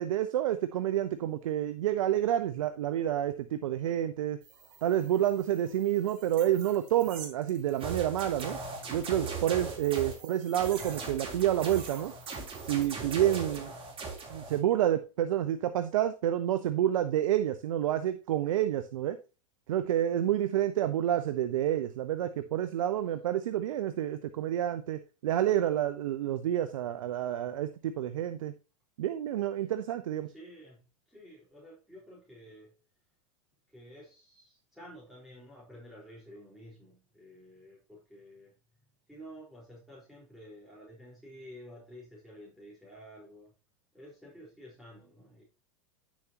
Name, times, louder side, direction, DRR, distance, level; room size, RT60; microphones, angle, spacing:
voice 1, 0.0-4.4 4.8-8.6 8.9-12.1 12.7-13.7 14.3-19.2 19.7-28.5 29.0-30.3, right 11 dB, 75° right, 0.8 m, -29 dB
sound 1, 4.4-12.9, right 6 dB, 55° right, 3.6 m, -51 dB
sound 2, 7.8-10.2 10.5-14.6, right 4 dB, 30° right, 3.7 m, -39 dB
voice 2, 30.3-32.8 33.7-38.5 39.1-43.5 43.9-45.4, equal, ahead, 4.5 m, -51 dB
10.5 x 7.3 x 2.9 m
hypercardioid pair, 100°, 17 cm